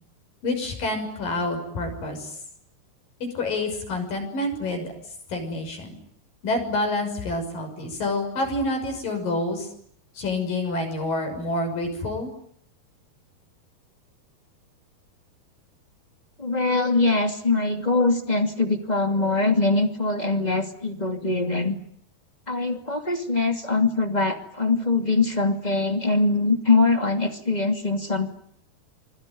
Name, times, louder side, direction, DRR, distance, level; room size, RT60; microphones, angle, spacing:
voice 1, 0.4-2.3 3.2-4.9 5.3-6.0 6.4-9.7 10.2-12.3, left 2 dB, 55° left, 4 dB, 7.9 m, -28 dB
voice 2, 16.4-21.7 22.5-28.3, left 3 dB, 15° left, 6 dB, 1.6 m, -23 dB
27.0 x 22.5 x 9.4 m, 0.65 s
omnidirectional pair, 4.7 m